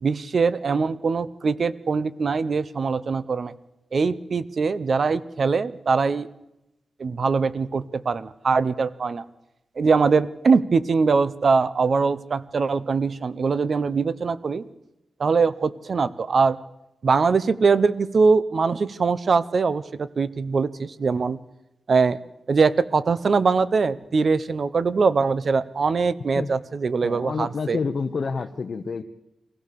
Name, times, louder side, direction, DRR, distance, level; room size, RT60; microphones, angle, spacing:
voice 1, 0.0-3.5 3.9-6.3 7.0-9.2 9.8-14.6 15.2-16.6 17.0-21.4 21.9-22.2 22.5-27.8, right 4 dB, 50° right, 15 dB, 0.8 m, -22 dB
voice 2, 27.0-29.0, left 5 dB, 50° left, 5 dB, 0.9 m, -28 dB
23.5 x 16.0 x 6.9 m, 0.90 s
wide cardioid pair, 145°, 0 cm